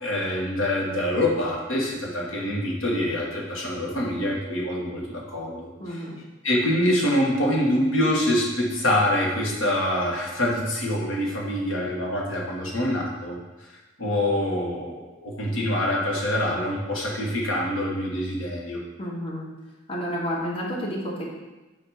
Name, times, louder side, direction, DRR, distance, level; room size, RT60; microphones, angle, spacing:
voice 1, 0.0-6.0 6.4-13.4 14.0-18.8, left 1 dB, 85° left, -2 dB, 1.1 m, -25 dB
voice 2, 5.8-6.2 19.0-19.5 19.9-21.2, equal, 30° left, -4 dB, 1.1 m, -30 dB
6.8 x 2.6 x 5.5 m, 1.1 s
head